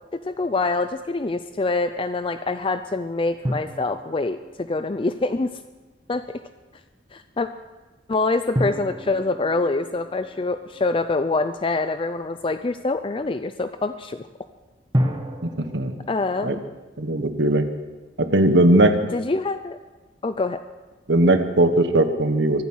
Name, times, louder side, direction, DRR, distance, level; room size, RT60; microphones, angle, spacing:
voice 1, 0.1-5.5 6.1-6.4 7.1-7.5 8.1-14.3 16.1-16.6 19.1-19.8 20.2-20.6, left 3 dB, 30° left, 10 dB, 0.5 m, -25 dB
sound 1, 3.4-5.7 8.5-11.5 14.9-16.8, equal, 25° right, 1.4 m, -31 dB
voice 2, 15.4-16.0 16.4-16.6 17.0-17.7 18.2-19.0 21.1-22.6, right 1 dB, 70° right, 8 dB, 1.4 m, -19 dB
23.5 x 9.4 x 6.3 m, 1.2 s
head